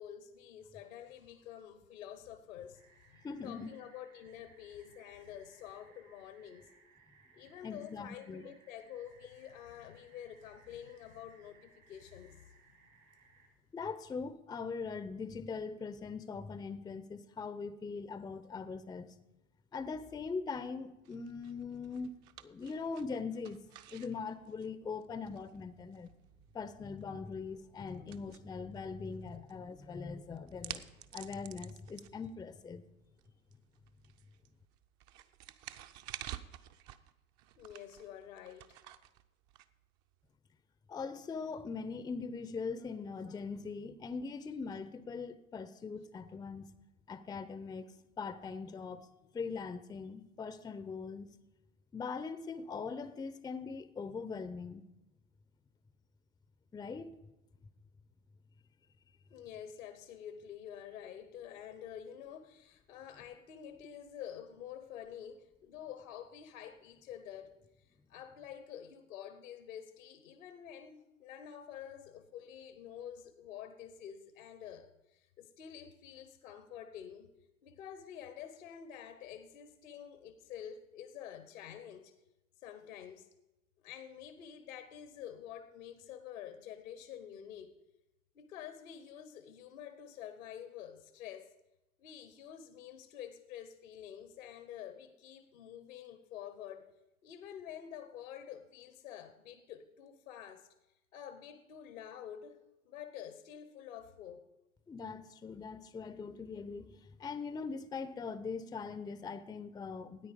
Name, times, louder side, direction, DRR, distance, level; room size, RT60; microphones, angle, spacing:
voice 1, 0.0-6.7 7.3-12.5 37.6-38.8 59.3-77.3 77.6-82.1 82.6-83.3 83.8-87.8 88.3-91.5 92.0-96.9 97.2-100.7 101.1-102.6 102.8-104.4, left 9 dB, 75° left, 10 dB, 1.0 m, -48 dB
sound 1, 2.7-13.5, right 5 dB, 75° right, 4.0 m, -65 dB
voice 2, 3.2-3.7 7.6-8.5 13.7-19.1 19.7-23.6 23.9-26.1 26.5-32.8 40.9-46.7 47.1-47.9 48.2-49.1 49.3-51.3 51.9-54.8 56.7-57.1 104.9-110.3, left 5 dB, 10° left, 14 dB, 0.5 m, -41 dB
sound 2, 21.0-40.3, right 12 dB, 45° right, 0.7 m, -52 dB
13.5 x 9.4 x 5.1 m, 0.97 s
figure-of-eight pair, 80°, 40 cm